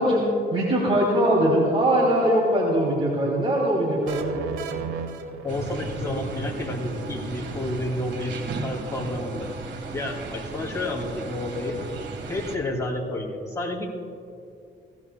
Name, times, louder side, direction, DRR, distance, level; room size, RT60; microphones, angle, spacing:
voice 1, 0.0-4.3, equal, 30° right, -4 dB, 2.8 m, -21 dB
sound 1, 4.1-6.1, right 6 dB, 85° right, 1.0 m, -33 dB
voice 2, 5.4-8.3 8.6-9.5 9.9-11.8 12.3-13.9, left 1 dB, 15° left, -1 dB, 2.5 m, -30 dB
sound 2, 5.5-12.6, right 3 dB, 65° right, 1.6 m, -35 dB
18.5 x 16.0 x 2.3 m, 2.5 s
cardioid pair, 90°, 20 cm